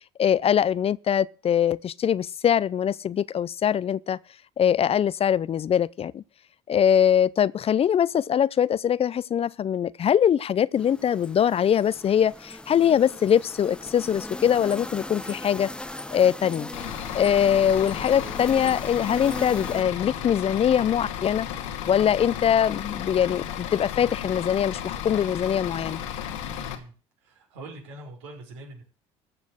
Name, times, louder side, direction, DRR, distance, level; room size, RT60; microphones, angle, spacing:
voice 1, 0.2-4.2 4.6-6.2 6.7-15.7 16.1-16.7 17.1-21.5 21.9-26.0, left 9 dB, 40° left, 0.6 m, -22 dB
sound 1, 10.8-19.8, left 1 dB, 5° left, 1.0 m, -38 dB
Bus / Idling, 16.7-26.7, left 9 dB, 85° left, 2.4 m, -34 dB
voice 2, 26.5-26.9 27.2-28.8, right 2 dB, 85° right, 5.8 m, -43 dB
14.5 x 6.4 x 7.9 m
hypercardioid pair, 70°, 15 cm